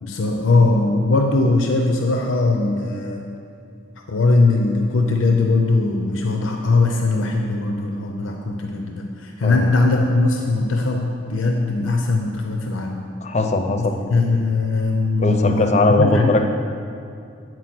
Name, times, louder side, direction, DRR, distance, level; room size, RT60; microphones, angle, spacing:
voice 1, 0.0-3.2 4.1-13.0 13.7-15.7 16.0-16.5, left 3 dB, 85° left, 2 dB, 0.5 m, -20 dB
voice 2, 13.2-14.0 15.2-16.5, left 2 dB, 35° left, 6 dB, 0.5 m, -19 dB
8.1 x 4.5 x 6.0 m, 2.5 s
head